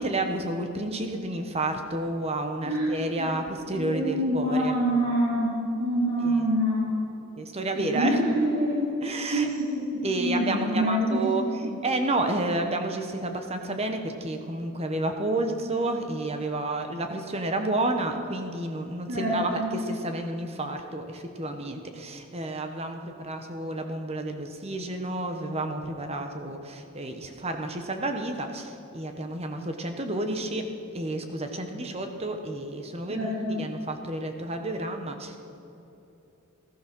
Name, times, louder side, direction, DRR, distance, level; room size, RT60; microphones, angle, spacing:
voice 1, 0.0-4.7 7.4-8.2 9.0-9.5 10.0-11.4 11.8-30.7 30.9-35.4, right 2 dB, 30° right, 5 dB, 1.2 m, -30 dB
voice 2, 2.6-3.3 3.7-6.9 7.7-8.9 9.3-9.7 9.9-11.4 11.6-11.7 19.1-19.7 33.1-33.6, equal, 75° right, -7 dB, 3.5 m, -26 dB
18.0 x 13.0 x 6.2 m, 2.9 s
head